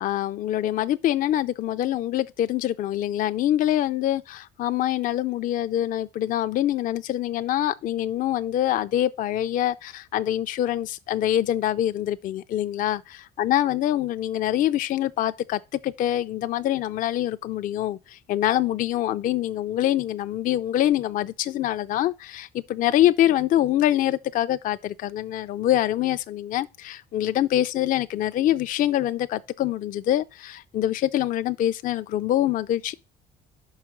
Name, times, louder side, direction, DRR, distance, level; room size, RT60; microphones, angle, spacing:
voice 1, 0.0-32.9, left 12 dB, 55° left, 0.4 m, -25 dB
5.7 x 4.8 x 6.0 m
cardioid pair, 110°, 17 cm